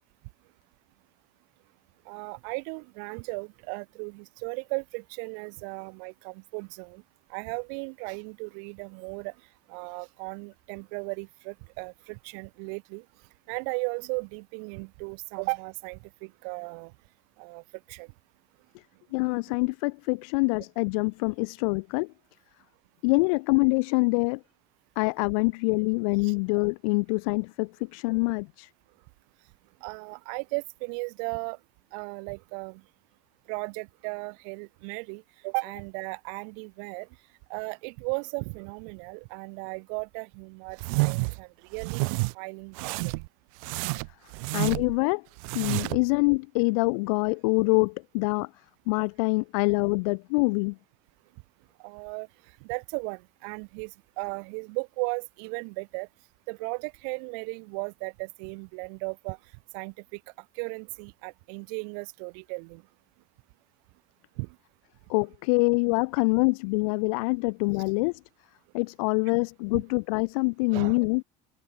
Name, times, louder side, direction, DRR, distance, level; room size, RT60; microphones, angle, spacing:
voice 1, 2.0-7.0 7.3-9.4 9.7-13.0 13.5-16.9 17.4-18.1 19.5-19.6 26.2-26.3 29.8-31.6 31.9-32.8 33.5-37.1 37.5-43.1 44.4-44.5 51.8-56.1 56.5-62.8 64.4-64.6 69.7-69.8 70.7-71.0, right 40 dB or more, 70° right, 1.2 m, -36 dB
voice 2, 19.1-22.1 23.0-24.4 25.0-28.7 44.5-45.2 45.5-48.5 48.9-50.8 65.1-68.1 68.7-71.2, left 30 dB, 85° left, 0.8 m, -25 dB
sound 1, 40.8-41.4 41.8-42.3 42.7-43.3 43.6-45.0 45.4-46.0, right 31 dB, 85° right, 0.5 m, -29 dB
open air
cardioid pair, 175°, 18 cm